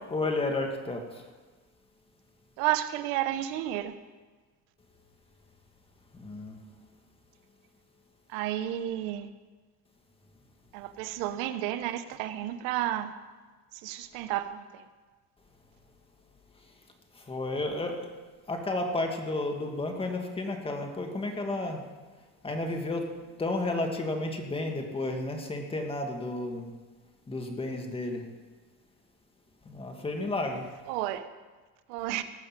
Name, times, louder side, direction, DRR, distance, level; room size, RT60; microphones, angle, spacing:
voice 1, 0.1-1.2 6.1-6.6 17.1-18.1 18.5-21.8 22.4-23.1 23.4-26.7 27.3-28.2 29.7-30.7, left 2 dB, 15° left, 3 dB, 1.9 m, -32 dB
voice 2, 2.6-3.9 8.3-9.3 10.7-13.1 13.8-14.8 30.9-31.3 31.9-32.2, right 13 dB, 80° right, 11 dB, 1.0 m, -31 dB
18.0 x 6.3 x 7.5 m, 1.3 s
cardioid pair, 130°, 33 cm